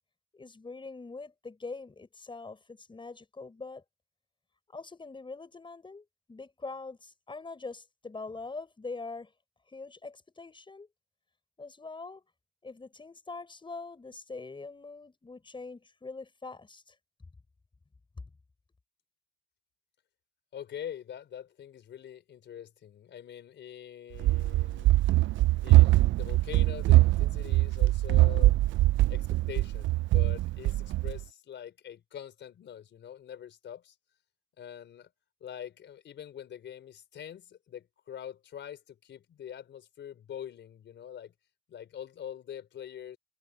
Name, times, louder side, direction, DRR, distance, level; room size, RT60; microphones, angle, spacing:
voice 1, 0.3-3.8 4.7-9.3 9.7-10.9 11.6-12.2 12.6-16.9 18.2-18.3, left 3 dB, 25° left, 5.8 m, -43 dB
voice 2, 20.5-25.0 25.6-28.5 29.1-33.9 34.6-35.1 35.4-41.3 41.7-43.2, left 9 dB, 65° left, 4.8 m, -44 dB
Run, 24.2-31.2, right 17 dB, 70° right, 0.4 m, -23 dB
cardioid pair, 90°, 20 cm